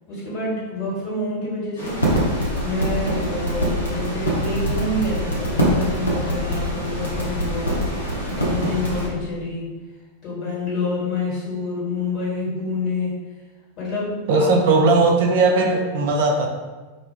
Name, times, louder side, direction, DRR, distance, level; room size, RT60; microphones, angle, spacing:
voice 1, 0.1-2.0 2.6-7.9 8.3-9.7 10.2-13.2 13.8-14.5, left 2 dB, 40° left, -7 dB, 1.3 m, -27 dB
sound 1, 1.8-9.1, equal, 75° left, 0.7 m, -24 dB
voice 2, 14.3-16.5, right 3 dB, 55° right, 2 dB, 0.4 m, -18 dB
2.2 x 2.2 x 3.2 m, 1.3 s
figure-of-eight pair, 90°, 0 cm